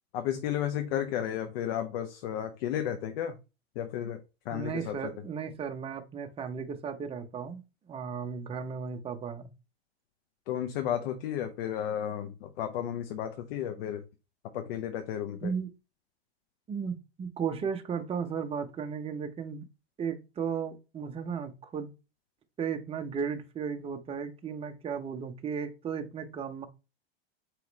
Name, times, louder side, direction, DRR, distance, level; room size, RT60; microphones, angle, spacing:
voice 1, 0.1-3.4 3.7-5.1 10.5-14.1 14.5-15.5, left 10 dB, 65° left, 0.7 m, -33 dB
voice 2, 4.5-7.6 7.9-9.5 15.4-15.7 16.7-19.6 20.0-21.9 22.6-26.7, right 6 dB, 20° right, 0.7 m, -35 dB
4.8 x 3.1 x 3.0 m
hypercardioid pair, 115°, 31 cm